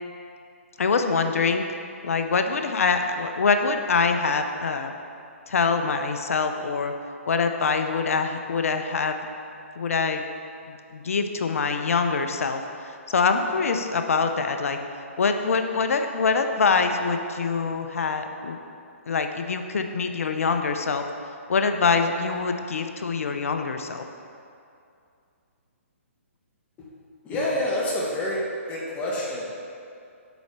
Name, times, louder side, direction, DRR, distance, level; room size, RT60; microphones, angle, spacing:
voice 1, 0.8-1.6 2.0-4.9 5.5-6.9 7.3-9.3 9.8-10.2 10.7-14.8 15.2-18.6 19.1-21.0 21.5-24.0, left 4 dB, 75° left, 6 dB, 0.7 m, -24 dB
voice 2, 27.2-28.4 28.7-29.7, left 1 dB, 20° left, -4 dB, 1.4 m, -28 dB
8.0 x 4.2 x 6.6 m, 2.5 s
hypercardioid pair, 140°, 8 cm